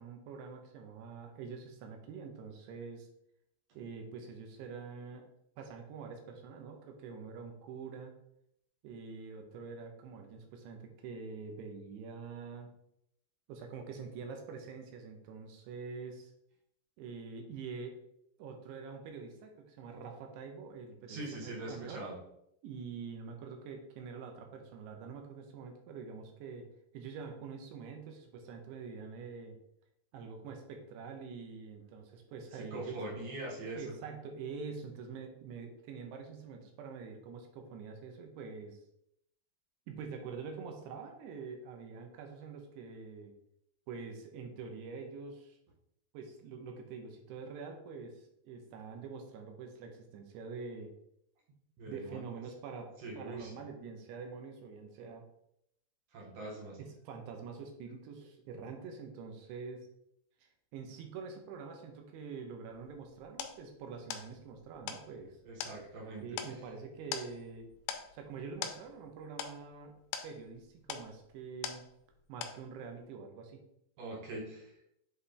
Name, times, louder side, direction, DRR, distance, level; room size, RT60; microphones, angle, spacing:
voice 1, 0.0-3.1 3.7-5.3 5.6-8.1 8.8-12.7 13.5-16.3 17.0-18.0 18.4-22.1 22.6-26.7 26.9-29.6 30.1-33.0 33.7-38.8 39.9-43.3 43.9-45.6 46.1-50.9 51.9-55.2 56.8-59.9 60.4-65.4 66.2-67.7 68.1-71.8 72.3-73.6, right 5 dB, 80° right, 4 dB, 2.9 m, -45 dB
voice 2, 21.1-22.2 32.6-33.9 51.8-52.2 53.0-53.5 56.1-56.8 65.5-66.4 74.0-74.7, right 2 dB, 60° right, -2 dB, 2.1 m, -42 dB
sound 1, 62.7-72.2 72.4-73.0, left 8 dB, 90° left, 2.1 m, -44 dB
7.6 x 4.2 x 3.4 m, 0.76 s
omnidirectional pair, 5.0 m